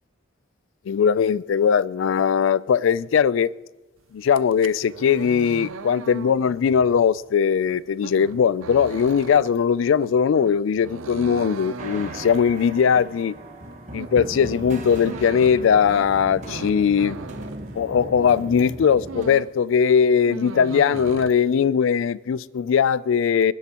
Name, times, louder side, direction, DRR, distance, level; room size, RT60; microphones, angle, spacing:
voice 1, 0.9-3.5 4.1-13.3 13.9-17.2 17.7-23.5, left 7 dB, 75° left, 0.3 m, -20 dB
sound 1, 4.2-18.3 18.6-19.6 19.9-21.3, right 4 dB, 85° right, 0.6 m, -39 dB
sound 2, 11.8-19.3, right 1 dB, 35° right, 1.2 m, -37 dB
22.0 x 11.5 x 2.9 m
head